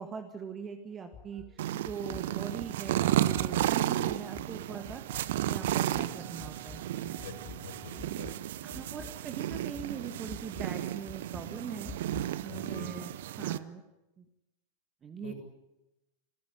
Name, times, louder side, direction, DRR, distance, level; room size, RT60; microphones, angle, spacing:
voice 1, 0.0-6.8 8.6-11.9 12.4-13.8 14.2-14.3 15.0-15.3, right 6 dB, 25° right, 7 dB, 1.9 m, -42 dB
sound 1, 0.9-10.8, right 7 dB, 40° right, 2.3 m, -55 dB
sound 2, 1.1-1.5 1.8-2.3 2.6-2.9 3.3-3.8 4.1-4.5 4.9-5.2 5.6-6.0 6.4-6.9 7.2-7.6 8.0-8.4 8.7-9.2 9.5-9.9 10.3-10.7 11.1-11.5 11.8-12.3, left 6 dB, 20° left, 2.3 m, -47 dB
sound 3, 1.6-13.6, right 13 dB, 55° right, 0.8 m, -33 dB
voice 2, 7.0-8.3 8.6-9.0 12.5-12.9 15.2-15.3, left 4 dB, 60° left, 5 dB, 6.2 m, -46 dB
25.5 x 15.5 x 10.0 m, 0.94 s
figure-of-eight pair, 90°, 0 cm